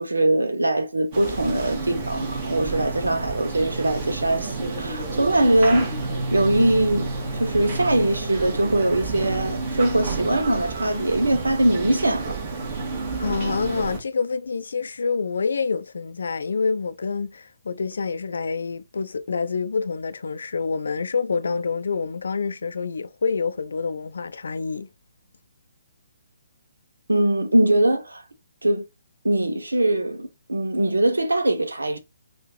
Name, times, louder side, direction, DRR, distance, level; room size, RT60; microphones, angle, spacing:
voice 1, 0.0-5.9 6.3-12.4 27.1-28.2 28.6-28.9 29.2-32.0, right 1 dB, 75° right, 1.0 m, -22 dB
sound 1, 1.1-14.0, right 3 dB, 30° right, 2.0 m, -30 dB
voice 2, 13.2-24.9, left 5 dB, 60° left, 0.6 m, -27 dB
5.4 x 2.7 x 3.1 m
figure-of-eight pair, 135°, 0 cm